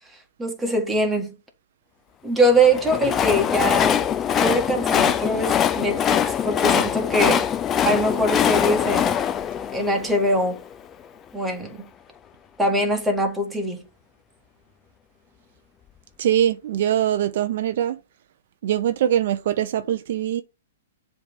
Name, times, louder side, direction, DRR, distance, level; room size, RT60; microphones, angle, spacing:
voice 1, 0.4-1.4 2.2-4.0 4.3-7.5 7.9-9.1 9.7-10.6 11.3-11.8 12.6-13.8, right 1 dB, 5° right, 1.7 m, -22 dB
Train, 2.6-10.7, left 9 dB, 20° left, 0.5 m, -22 dB
voice 2, 16.2-18.0 18.6-20.4, right 10 dB, 60° right, 0.6 m, -22 dB
7.3 x 3.3 x 5.2 m
hypercardioid pair, 145°, 0 cm